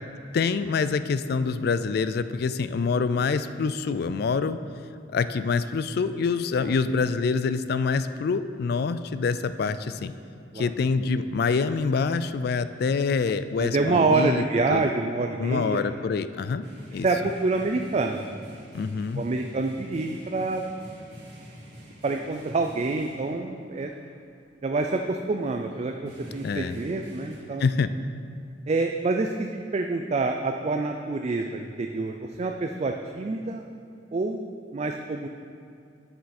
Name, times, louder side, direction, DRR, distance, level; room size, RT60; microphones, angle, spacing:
voice 1, 0.3-4.6 5.1-10.1 10.6-14.4 14.7-14.9 15.4-16.6 16.9-17.1 18.7-19.2 26.4-26.7 27.6-27.9, left 5 dB, 60° left, 12 dB, 0.3 m, -26 dB
voice 2, 13.6-15.8 17.0-18.4 19.2-20.6 22.0-23.9 24.6-27.7 28.7-33.6 34.1-35.3, right 3 dB, 35° right, 4 dB, 0.4 m, -27 dB
sound 1, 16.6-23.5 23.7-24.0 24.9-25.0 25.4-25.5 25.7-27.4, equal, 65° right, 2.4 m, -46 dB
9.4 x 7.0 x 4.3 m, 2.4 s
head